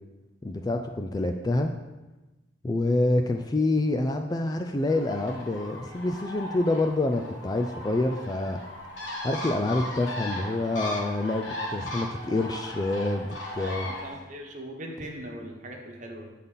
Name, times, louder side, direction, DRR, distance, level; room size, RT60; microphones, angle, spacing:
voice 1, 0.4-1.7 2.6-8.6 9.2-13.9, left 2 dB, 20° left, 5 dB, 0.3 m, -27 dB
Bird, 4.9-14.1, left 1 dB, 75° left, 1.6 m, -37 dB
voice 2, 13.5-16.3, right 1 dB, 40° right, 1 dB, 1.1 m, -40 dB
8.4 x 4.0 x 5.4 m, 1.1 s
head